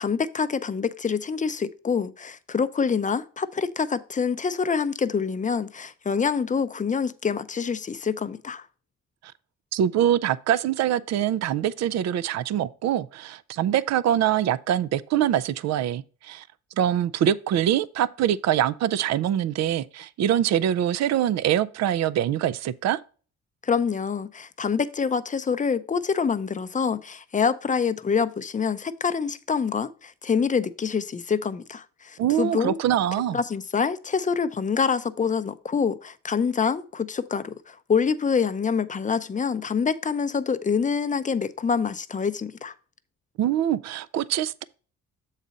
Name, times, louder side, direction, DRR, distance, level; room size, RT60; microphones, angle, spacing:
voice 1, 0.0-8.7 23.6-32.8 33.3-42.7, left 6 dB, 25° left, 0.5 m, -26 dB
voice 2, 9.7-16.4 16.8-23.0 32.2-33.4 43.4-44.6, right 10 dB, 60° right, 0.5 m, -24 dB
7.3 x 4.1 x 5.1 m
cardioid pair, 90°, 30 cm